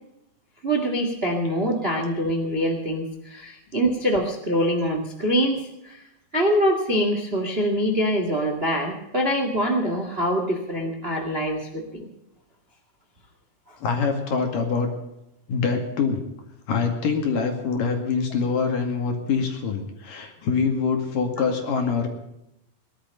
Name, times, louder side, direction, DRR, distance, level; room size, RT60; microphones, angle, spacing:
voice 1, 0.6-6.0 6.3-12.1, equal, 30° right, 4 dB, 1.1 m, -24 dB
voice 2, 13.8-14.9 15.5-16.2 16.7-22.1, left 5 dB, 60° left, 4 dB, 3.6 m, -24 dB
20.0 x 12.0 x 5.4 m, 0.87 s
omnidirectional pair, 4.7 m